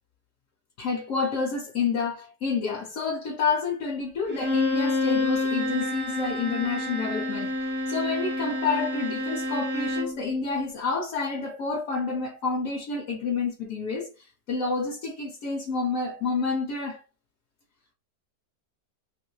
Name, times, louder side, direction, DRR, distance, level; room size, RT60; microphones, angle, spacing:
voice 1, 0.8-17.0, left 4 dB, 65° left, 0.9 m, -29 dB
Bowed string instrument, 4.3-10.2, left 2 dB, 15° right, 0.3 m, -28 dB
2.8 x 2.6 x 3.0 m
omnidirectional pair, 1.8 m